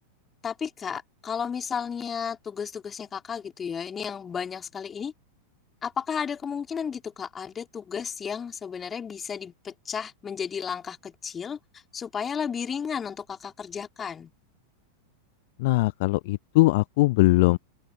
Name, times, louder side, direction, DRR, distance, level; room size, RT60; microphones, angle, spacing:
voice 1, 0.4-5.1 5.8-14.3, left 7 dB, 20° left, 4.0 m, -33 dB
voice 2, 15.6-17.6, left 21 dB, 50° left, 0.5 m, -21 dB
open air
figure-of-eight pair, 90°, 0 cm